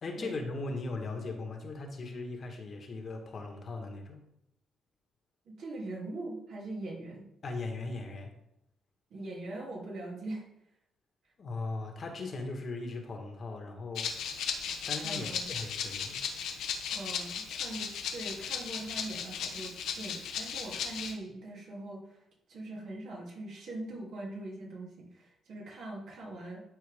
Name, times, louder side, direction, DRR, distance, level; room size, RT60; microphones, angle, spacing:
voice 1, 0.0-4.2 7.4-8.3 11.4-14.1 14.4-14.6 14.9-16.3, left 3 dB, 50° left, 3 dB, 1.5 m, -38 dB
voice 2, 5.5-7.2 9.1-10.4 15.0-15.4 16.9-22.2 22.5-26.6, right 2 dB, 70° right, -4 dB, 3.0 m, -42 dB
Rattle (instrument), 13.9-21.1, left 7 dB, 80° left, 1.0 m, -36 dB
12.0 x 4.5 x 3.6 m, 0.80 s
cardioid pair, 90°, 0 cm